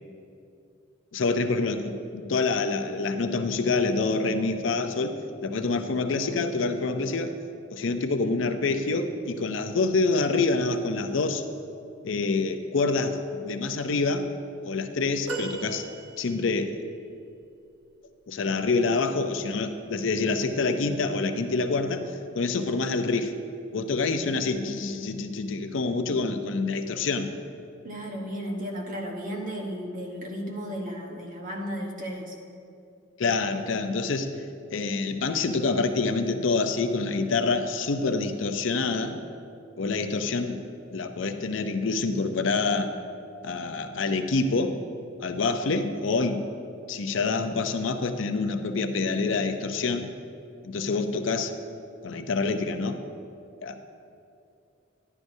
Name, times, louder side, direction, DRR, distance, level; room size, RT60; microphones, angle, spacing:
voice 1, 1.1-5.1 5.4-7.3 7.7-11.4 12.0-14.3 14.6-15.8 16.2-16.8 18.3-22.0 22.3-23.3 23.7-27.3 33.2-34.3 34.7-39.2 39.8-40.6 40.9-42.9 43.4-44.8 45.2-46.5 46.9-50.1 50.6-51.5 52.0-53.0 53.6-53.9, left 3 dB, 70° left, 7 dB, 0.5 m, -26 dB
sound 1, 15.3-16.7 17.4-17.5, right 3 dB, 85° right, 1.1 m, -37 dB
voice 2, 27.8-32.4, equal, 45° right, 1 dB, 1.2 m, -34 dB
11.5 x 11.0 x 2.7 m, 2.5 s
head